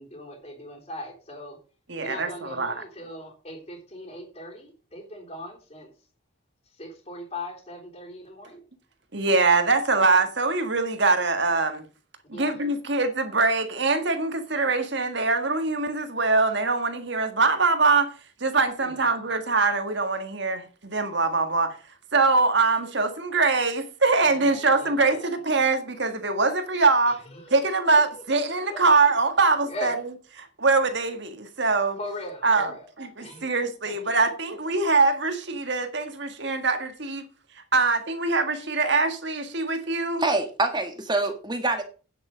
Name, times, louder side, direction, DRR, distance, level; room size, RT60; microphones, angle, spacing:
voice 1, 0.0-1.6 2.0-5.9 6.7-8.6 12.3-12.6 18.8-19.2 24.2-25.3 27.1-27.8 28.7-28.8 29.7-30.0 32.0-32.9 33.2-33.5 33.9-34.1, left 1 dB, 30° left, 3.5 m, -39 dB
voice 2, 1.9-2.8 9.1-11.8 12.3-18.1 18.4-21.7 22.1-27.2 27.5-29.9 30.4-32.0 32.4-32.7 33.0-37.2 37.7-40.2, right 3 dB, 55° right, 1.7 m, -23 dB
voice 3, 40.2-41.8, right 2 dB, 20° right, 1.4 m, -25 dB
9.4 x 8.9 x 5.1 m
head